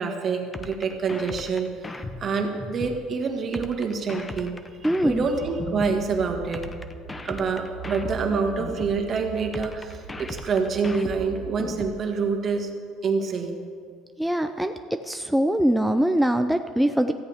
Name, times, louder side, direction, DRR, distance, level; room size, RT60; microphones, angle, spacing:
voice 1, 0.0-1.7 2.2-4.6 5.0-6.6 7.2-12.7 13.0-13.6, right 5 dB, 40° right, 3 dB, 1.9 m, -26 dB
sound 1, 0.5-3.0 3.5-6.0 6.5-9.0 9.5-12.0, left 2 dB, 15° left, 0.9 m, -37 dB
voice 2, 4.8-5.3 14.2-14.7 15.0-17.1, right 1 dB, ahead, 6 dB, 0.5 m, -22 dB
sound 2, 4.8-11.6, right 5 dB, 70° right, 1.0 m, -41 dB
17.5 x 14.0 x 3.6 m, 2.1 s
cardioid pair, 120°, 0 cm